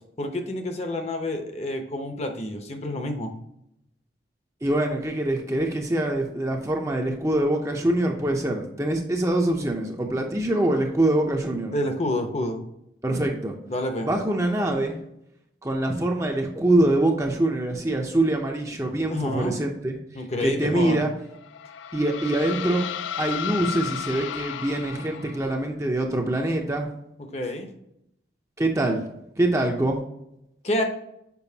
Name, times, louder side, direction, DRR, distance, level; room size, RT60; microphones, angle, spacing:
voice 1, 0.2-3.3 11.7-12.6 13.7-14.1 19.0-19.6 20.1-21.0 27.3-27.7 30.6-30.8, left 1 dB, 35° left, 5 dB, 0.8 m, -28 dB
voice 2, 4.6-11.7 13.0-13.5 14.0-15.0 15.6-20.0 20.4-21.1 21.9-22.9 23.2-26.9 28.6-29.0 29.4-30.0, right 1 dB, 15° right, 1 dB, 0.6 m, -24 dB
sound 1, 21.3-25.6, left 9 dB, 80° left, 0.4 m, -34 dB
7.0 x 5.0 x 2.8 m, 0.79 s
head